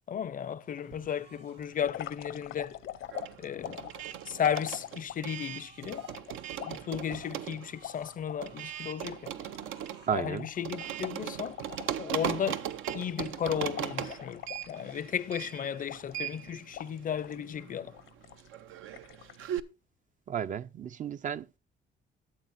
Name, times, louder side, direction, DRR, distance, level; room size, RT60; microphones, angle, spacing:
voice 1, 0.1-2.8 3.4-3.9 4.3-6.0 6.6-9.3 10.1-11.6 12.0-12.7 12.9-17.9, left 8 dB, 45° left, 0.4 m, -34 dB
sound 1, 0.8-1.6 3.0-4.6 5.1-9.0 9.3-10.2 10.6-12.0 12.3-12.9, right 3 dB, 60° right, 1.7 m, -59 dB
sound 2, 0.8-2.0 2.3-19.6, right 10 dB, 90° right, 0.6 m, -39 dB
sound 3, 1.8-5.4 5.9-8.4 8.8-8.9 9.1-12.0 12.3-12.5 12.9-15.4 15.9-16.4 16.7-17.4 17.9-18.5 18.9-19.4, left 11 dB, 80° left, 0.7 m, -44 dB
voice 2, 10.1-10.5 20.3-21.6, right 8 dB, 40° right, 0.4 m, -33 dB
13.0 x 7.5 x 2.5 m
cardioid pair, 90°, 20 cm